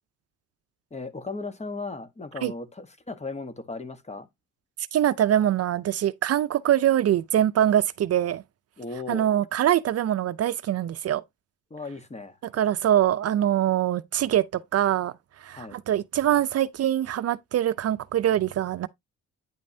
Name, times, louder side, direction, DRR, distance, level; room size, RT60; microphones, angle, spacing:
voice 1, 0.9-4.3 8.8-9.3 11.7-12.4 15.5-15.8, left 3 dB, 20° left, 1.2 m, -36 dB
voice 2, 4.9-8.4 9.1-11.2 12.5-15.1 15.4-18.9, right 11 dB, 55° right, 0.5 m, -23 dB
9.5 x 5.2 x 2.7 m
cardioid pair, 90°, 30 cm